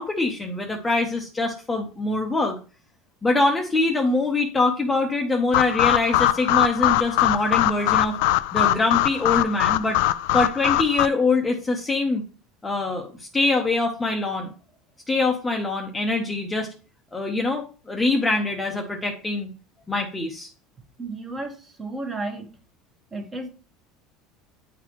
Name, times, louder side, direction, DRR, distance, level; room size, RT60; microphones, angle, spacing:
voice 1, 0.0-2.6 3.2-8.2 8.5-10.0 10.3-12.2 12.6-14.5 15.1-16.7 17.1-19.5 19.9-20.5, left 2 dB, 10° left, 0.8 m, -24 dB
sound 1, 5.5-11.1, left 15 dB, 75° left, 0.3 m, -22 dB
voice 2, 21.0-22.5 23.1-23.5, right 2 dB, 20° right, 1.3 m, -33 dB
9.2 x 4.0 x 3.0 m
cardioid pair, 150°, 0 cm